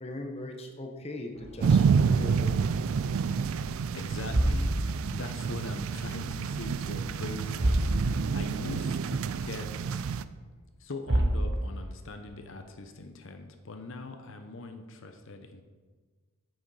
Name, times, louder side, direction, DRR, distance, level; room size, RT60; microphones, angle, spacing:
voice 1, 0.0-2.5, left 1 dB, 30° left, 3 dB, 0.8 m, -40 dB
sound 1, 1.3-3.0 3.3-3.6 4.1-5.9 6.2-6.9 7.2-7.3 7.5-8.5 8.9-9.0 9.6-9.7 10.7-10.8 11.0-12.1, right 1 dB, 55° right, 1.1 m, -30 dB
sound 2, 1.6-10.2, right 6 dB, 70° right, 0.3 m, -28 dB
voice 2, 3.9-10.1 10.8-15.6, left 2 dB, 60° left, 6 dB, 0.7 m, -41 dB
sound 3, 4.2-9.0, right 1 dB, 10° right, 0.8 m, -50 dB
8.9 x 6.4 x 4.8 m, 1.4 s
head